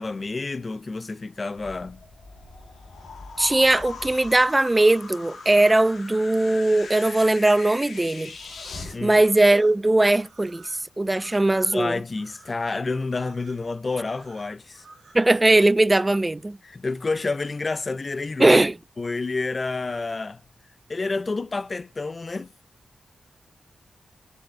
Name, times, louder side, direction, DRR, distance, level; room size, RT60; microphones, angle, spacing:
voice 1, 0.0-2.0 8.9-9.2 11.7-14.8 16.6-18.6 19.0-20.4 20.9-22.5, left 3 dB, 40° left, 0.5 m, -29 dB
sound 1, 1.5-9.0, left 4 dB, 80° left, 2.9 m, -40 dB
voice 2, 3.4-8.3 9.0-12.0 15.1-16.6 18.4-18.8, right 2 dB, 20° right, 0.3 m, -19 dB
sound 2, 8.4-15.3, right 4 dB, 80° right, 1.8 m, -52 dB
7.6 x 6.5 x 3.1 m
cardioid pair, 65°, 0 cm